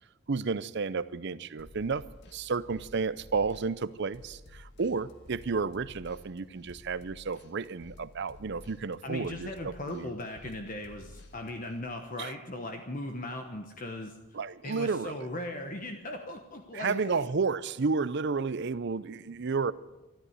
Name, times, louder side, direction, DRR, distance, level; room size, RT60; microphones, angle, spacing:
voice 1, 0.3-2.0 2.3-10.1 12.2-12.3 14.3-15.3 16.7-19.7, right 4 dB, 55° right, 17 dB, 0.6 m, -32 dB
sound 1, 1.6-11.8, left 1 dB, 55° left, 1.8 m, -53 dB
voice 2, 9.0-14.2 14.6-17.2, left 1 dB, 40° left, 4 dB, 1.2 m, -38 dB
13.5 x 12.5 x 8.0 m, 0.99 s
head